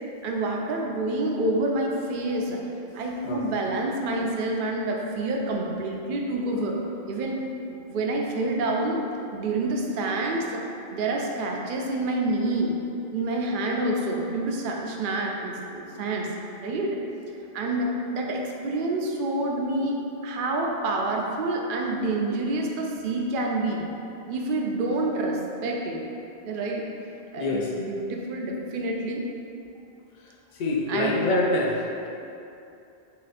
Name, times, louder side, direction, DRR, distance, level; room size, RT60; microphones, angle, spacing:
voice 1, 0.2-2.6 2.9-7.4 7.7-9.0 9.3-10.6 10.9-12.7 13.1-17.0 17.5-20.0 20.2-23.8 24.3-26.0 26.4-26.9 27.3-29.2 30.9-31.2, right 2 dB, 60° right, 0 dB, 0.6 m, -28 dB
voice 2, 27.4-27.7 30.6-31.9, left 2 dB, 55° left, -1 dB, 0.6 m, -25 dB
3.8 x 2.5 x 4.1 m, 2.7 s
omnidirectional pair, 1.1 m